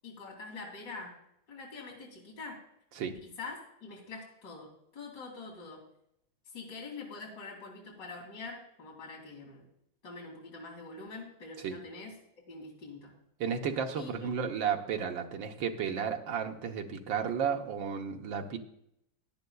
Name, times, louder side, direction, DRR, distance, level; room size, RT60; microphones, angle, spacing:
voice 1, 0.0-1.1 1.5-2.6 3.2-5.8 6.5-9.7 10.0-13.1 13.9-14.3, left 3 dB, 55° left, -2 dB, 3.1 m, -45 dB
voice 2, 13.4-18.6, right 7 dB, 70° right, 4 dB, 1.8 m, -33 dB
16.5 x 10.5 x 2.3 m, 0.76 s
omnidirectional pair, 2.2 m